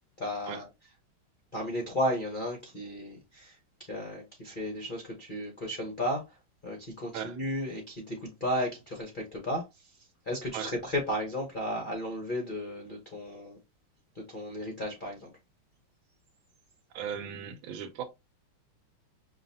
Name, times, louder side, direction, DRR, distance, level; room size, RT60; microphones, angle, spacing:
voice 1, 0.2-0.7 1.5-3.6 3.9-6.2 6.6-9.9 10.3-13.6 14.1-15.3, left 1 dB, 55° left, 0.5 m, -34 dB
voice 2, 16.9-18.0, right 8 dB, 75° right, 1.4 m, -37 dB
5.7 x 2.4 x 2.7 m
omnidirectional pair, 2.4 m